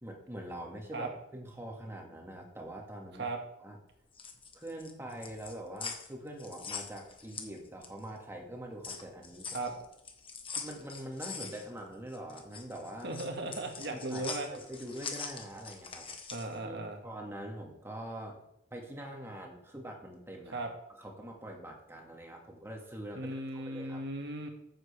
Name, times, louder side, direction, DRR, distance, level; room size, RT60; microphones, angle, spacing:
voice 1, 0.0-3.3 3.6-3.8 4.5-9.6 10.6-13.1 13.8-16.1 16.6-18.4 18.7-20.6 21.0-24.0, right 1 dB, 15° right, 1 dB, 1.9 m, -44 dB
sound 1, 4.0-8.1 8.5-16.6, left 5 dB, 30° left, 1.2 m, -43 dB
voice 2, 13.0-14.5 16.3-17.0 20.5-20.7 23.1-24.5, right 2 dB, 65° right, 3 dB, 1.8 m, -37 dB
14.0 x 7.5 x 3.4 m, 0.81 s
head